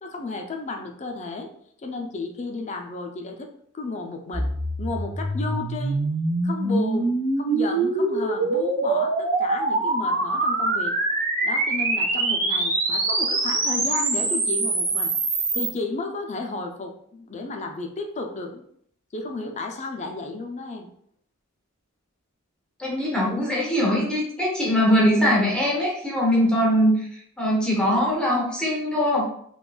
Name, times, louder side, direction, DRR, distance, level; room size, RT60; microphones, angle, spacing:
voice 1, 0.0-1.5 1.8-4.5 4.8-6.0 6.4-7.1 7.4-11.0 11.4-15.1 15.5-18.6 19.1-20.9, left 3 dB, 35° left, 4 dB, 0.4 m, -33 dB
sound 1, 4.3-15.7, right 2 dB, 40° right, 0.7 m, -24 dB
voice 2, 22.8-27.1 27.4-29.2, equal, 5° left, -4 dB, 0.8 m, -21 dB
3.7 x 2.3 x 2.3 m, 0.65 s
head